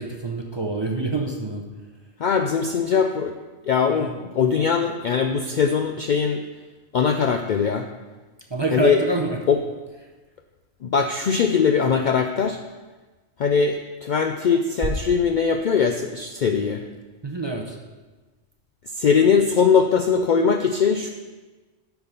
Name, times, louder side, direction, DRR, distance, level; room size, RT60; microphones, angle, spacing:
voice 1, 0.0-1.6 3.8-4.2 8.5-9.4 17.2-17.8, right 2 dB, 30° right, 1 dB, 0.6 m, -26 dB
voice 2, 2.2-3.3 3.7-6.4 6.9-7.9 8.7-9.0 9.5-9.6 10.9-12.6 13.4-16.8 19.0-21.1, left 6 dB, 60° left, 5 dB, 0.5 m, -21 dB
9.6 x 4.7 x 5.2 m, 1.3 s
omnidirectional pair, 1.2 m